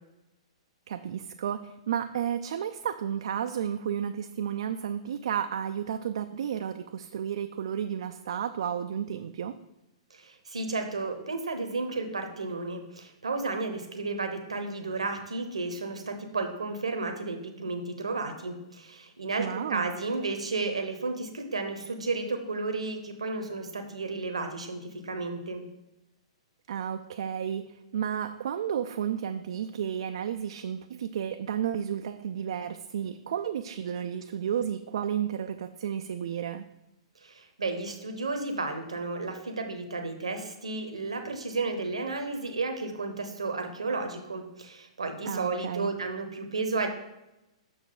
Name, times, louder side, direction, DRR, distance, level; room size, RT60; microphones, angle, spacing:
voice 1, 0.9-9.6 19.4-19.9 26.7-36.6 45.2-45.9, right 9 dB, 65° right, 7 dB, 0.4 m, -32 dB
voice 2, 10.1-25.6 37.2-46.9, right 3 dB, 85° right, 5 dB, 0.9 m, -33 dB
6.7 x 6.2 x 3.8 m, 0.94 s
hypercardioid pair, 120°, 3 cm